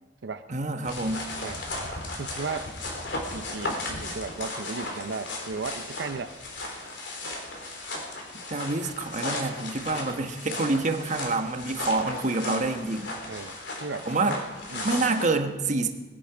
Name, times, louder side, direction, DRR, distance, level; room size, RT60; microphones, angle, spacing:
voice 1, 0.5-1.3 8.3-13.1 14.1-14.4 14.8-15.9, right 3 dB, 45° right, 7 dB, 1.2 m, -27 dB
sound 1, 0.8-15.3, left 2 dB, 75° left, 3.2 m, -35 dB
voice 2, 2.2-2.7 3.1-6.3 13.3-14.4 14.7-15.1, right 4 dB, 85° right, 9 dB, 0.6 m, -35 dB
21.0 x 10.5 x 5.0 m, 1.2 s
head